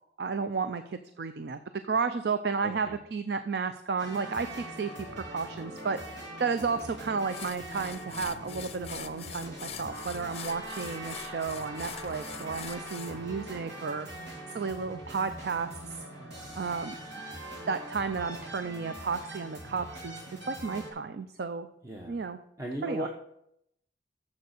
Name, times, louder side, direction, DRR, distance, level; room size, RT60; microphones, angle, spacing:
voice 1, 0.2-14.1 14.5-16.1 16.5-16.9 17.7-20.1 20.4-21.7 22.1-22.4 22.8-23.1, right 5 dB, 60° right, 10 dB, 0.4 m, -33 dB
voice 2, 2.6-3.0 21.8-22.2 22.6-23.1, right 1 dB, 15° right, 0 dB, 0.8 m, -36 dB
sound 1, 4.0-20.9, right 1 dB, 85° right, 3.2 m, -42 dB
sound 2, 6.8-6.9 7.3-13.1, left 8 dB, 35° left, 0.6 m, -43 dB
7.1 x 6.8 x 6.5 m, 0.77 s
head